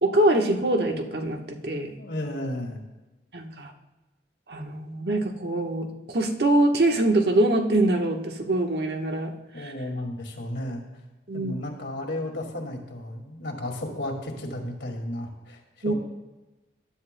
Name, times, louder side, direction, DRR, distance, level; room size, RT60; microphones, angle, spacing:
voice 1, 0.0-1.9 3.3-3.7 4.5-9.3 9.6-9.7 11.3-11.5 15.8-15.9, right 1 dB, 65° right, 3 dB, 1.2 m, -24 dB
voice 2, 2.0-2.8 9.5-10.8 11.3-15.9, left 1 dB, 90° left, 2 dB, 2.2 m, -33 dB
20.0 x 10.5 x 2.2 m, 1.1 s
head